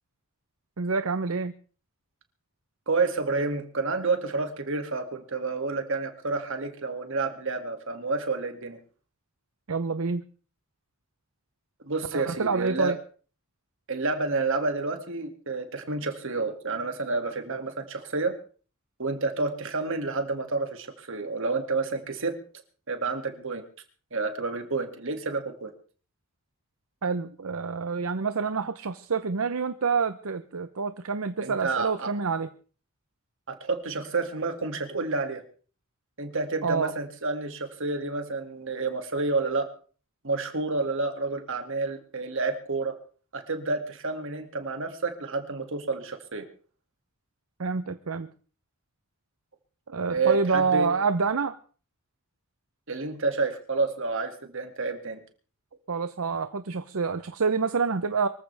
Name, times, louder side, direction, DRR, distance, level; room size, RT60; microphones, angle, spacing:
voice 1, 0.8-1.5 9.7-10.2 12.1-13.0 27.0-32.5 36.6-36.9 47.6-48.3 49.9-51.6 55.9-58.3, right 5 dB, 80° right, 11 dB, 0.8 m, -27 dB
voice 2, 2.9-8.8 11.9-12.9 13.9-18.3 19.0-22.3 22.9-23.6 24.1-25.7 31.4-32.1 33.5-35.4 36.2-39.7 40.2-42.9 43.3-46.5 50.1-50.9 52.9-55.2, right 3 dB, 65° right, 6 dB, 2.3 m, -29 dB
24.0 x 14.5 x 3.4 m, 0.40 s
head